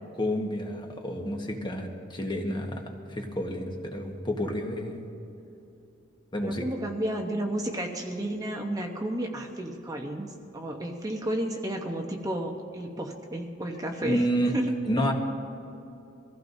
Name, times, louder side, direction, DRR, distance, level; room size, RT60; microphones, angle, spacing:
voice 1, 0.1-2.8 3.1-5.1 6.3-6.7 14.0-14.5 14.9-15.1, equal, 25° left, 2 dB, 1.3 m, -29 dB
voice 2, 6.4-14.2 14.5-15.0, right 1 dB, 20° right, 1 dB, 0.9 m, -32 dB
23.5 x 15.5 x 2.7 m, 2.8 s
head